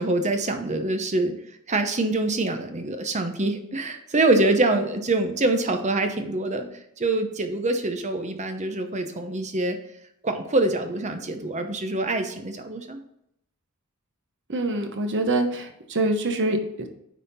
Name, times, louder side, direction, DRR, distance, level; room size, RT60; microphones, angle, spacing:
voice 1, 0.0-1.3 1.7-6.7 7.0-9.8 10.2-13.0, right 2 dB, 30° right, 6 dB, 0.8 m, -25 dB
voice 2, 14.5-16.9, right 2 dB, 55° right, 5 dB, 1.1 m, -25 dB
9.2 x 4.2 x 4.2 m, 0.75 s
head